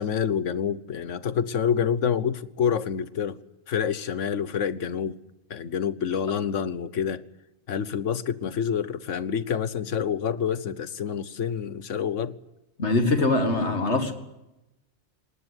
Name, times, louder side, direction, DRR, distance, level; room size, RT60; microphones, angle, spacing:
voice 1, 0.0-3.4 3.7-5.2 5.5-7.2 7.7-12.3, left 7 dB, 90° left, 1.3 m, -27 dB
voice 2, 12.8-14.1, left 2 dB, 70° left, 2.4 m, -23 dB
19.0 x 19.0 x 9.8 m
omnidirectional pair, 1.2 m